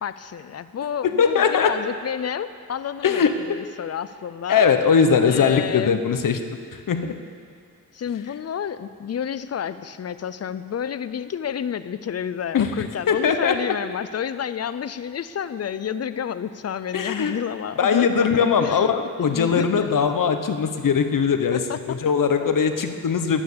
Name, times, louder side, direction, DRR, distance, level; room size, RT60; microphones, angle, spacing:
voice 1, 0.0-4.7 5.2-6.0 7.9-18.8 19.2-20.0 21.5-22.0 22.4-22.5, left 8 dB, 45° left, 13 dB, 0.5 m, -30 dB
voice 2, 1.0-1.7 3.0-3.4 4.5-6.4 6.7-7.2 12.5-12.8 13.1-13.7 16.9-17.4 17.8-23.4, left 6 dB, 65° left, 7 dB, 1.0 m, -20 dB
13.5 x 10.5 x 6.8 m, 2.2 s
wide cardioid pair, 105°, 34 cm